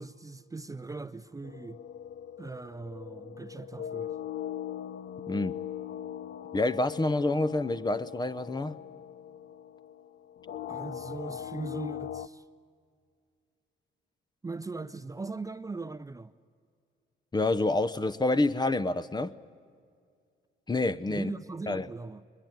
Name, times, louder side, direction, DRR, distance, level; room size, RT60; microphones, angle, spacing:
voice 1, 0.0-1.8 2.4-4.1 10.7-12.4 14.4-16.3 21.1-22.2, right 3 dB, 15° right, 0.6 m, -40 dB
sound 1, 1.4-12.3, left 10 dB, 65° left, 0.7 m, -40 dB
voice 2, 6.5-8.8 17.3-19.3 20.7-21.3 21.7-21.9, left 2 dB, 20° left, 0.8 m, -28 dB
22.5 x 21.5 x 9.2 m
cardioid pair, 90°, 20 cm